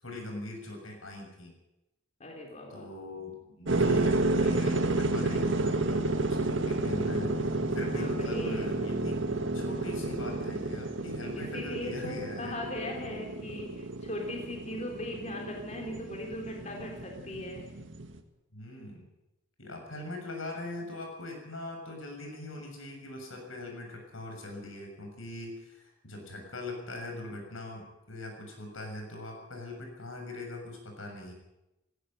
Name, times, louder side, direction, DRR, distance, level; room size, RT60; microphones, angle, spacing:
voice 1, 0.0-1.5 2.7-9.2 9.5-12.6 18.5-19.1 19.6-31.3, left 2 dB, 85° left, 3 dB, 6.9 m, -41 dB
voice 2, 2.2-2.9 7.9-8.6 11.3-17.7, left 1 dB, 35° left, 1 dB, 3.4 m, -39 dB
sound 1, 3.7-18.2, right 2 dB, 65° right, 1.9 m, -31 dB
17.0 x 17.0 x 9.0 m, 0.92 s
head